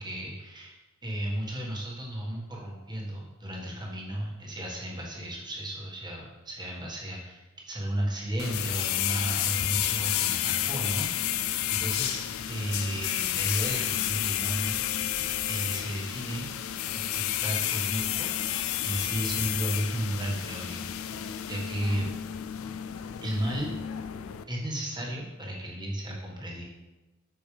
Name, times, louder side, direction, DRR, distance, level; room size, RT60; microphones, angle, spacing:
voice 1, 0.0-14.8 15.4-16.5 16.9-18.3 18.8-20.9 21.4-22.1 23.2-23.7 24.5-26.6, right 1 dB, 20° right, -3 dB, 1.7 m, -34 dB
sound 1, 8.4-24.4, left 12 dB, 80° left, 0.4 m, -31 dB
8.5 x 6.2 x 3.4 m, 1.1 s
head